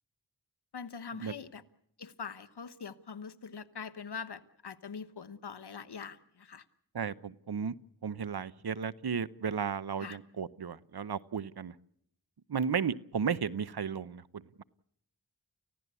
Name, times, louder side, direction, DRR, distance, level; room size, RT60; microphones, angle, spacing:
voice 1, 0.7-1.6 2.0-6.6 10.0-10.2, left 6 dB, 85° left, 11 dB, 1.1 m, -43 dB
voice 2, 6.9-7.7 8.0-11.7 12.5-14.6, right 6 dB, 70° right, 17 dB, 0.9 m, -34 dB
30.0 x 15.5 x 8.3 m, 0.70 s
wide cardioid pair, 50°, 39 cm